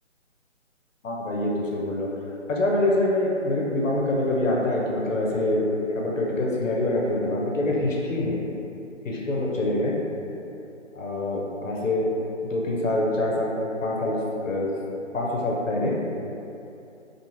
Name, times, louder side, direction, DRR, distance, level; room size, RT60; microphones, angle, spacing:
voice 1, 1.0-2.1 2.5-5.6 5.9-8.4 9.0-9.9 10.9-12.1 12.4-13.5 13.8-14.2 14.4-14.7 15.1-16.0, left 1 dB, 85° left, -3 dB, 0.6 m, -25 dB
2.5 x 2.4 x 2.8 m, 2.8 s
figure-of-eight pair, 150°, 38 cm